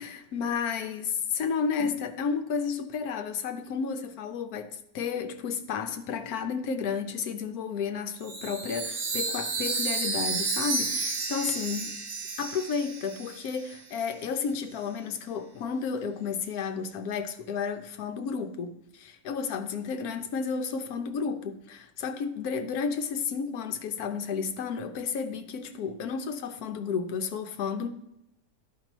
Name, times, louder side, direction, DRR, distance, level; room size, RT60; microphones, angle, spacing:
voice 1, 0.0-11.9 12.4-27.9, left 6 dB, 70° left, 1.1 m, -32 dB
Chime, 8.2-13.8, right 3 dB, 90° right, 1.9 m, -32 dB
11.5 x 5.2 x 3.0 m
omnidirectional pair, 1.7 m